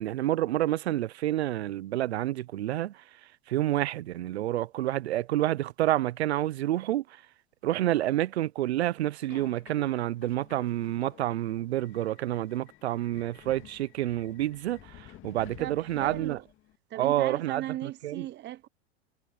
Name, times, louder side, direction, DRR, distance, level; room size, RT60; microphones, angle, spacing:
voice 1, 0.0-3.0 3.5-7.2 7.6-16.4 17.0-18.2, right 14 dB, 75° right, 1.0 m, -29 dB
voice 2, 7.8-8.2 15.6-16.4 16.9-18.7, right 13 dB, 35° right, 1.0 m, -38 dB
Subway metro underground, 9.2-16.8, left 14 dB, 40° left, 2.2 m, -51 dB
hypercardioid pair, 95°, 33 cm